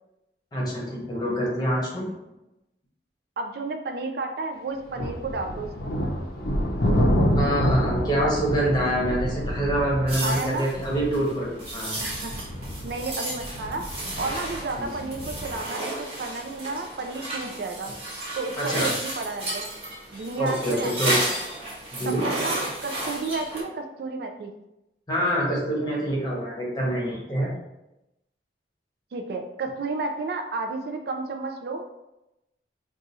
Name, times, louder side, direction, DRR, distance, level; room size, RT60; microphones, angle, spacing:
voice 1, 0.5-2.0 7.3-12.0 14.8-14.9 18.6-18.9 20.4-21.1 21.9-22.2 25.1-27.5, right 1 dB, 25° left, -4 dB, 0.9 m, -26 dB
voice 2, 3.4-5.9 10.2-10.7 12.0-12.4 12.8-17.9 18.4-19.7 20.1-21.2 22.1-24.5 29.1-31.9, right 3 dB, 60° right, 4 dB, 0.3 m, -32 dB
sound 1, 4.9-15.6, equal, 55° left, 0.5 m, -28 dB
sound 2, 10.1-23.6, right 1 dB, 35° right, 0.8 m, -33 dB
2.6 x 2.4 x 4.0 m, 0.92 s
head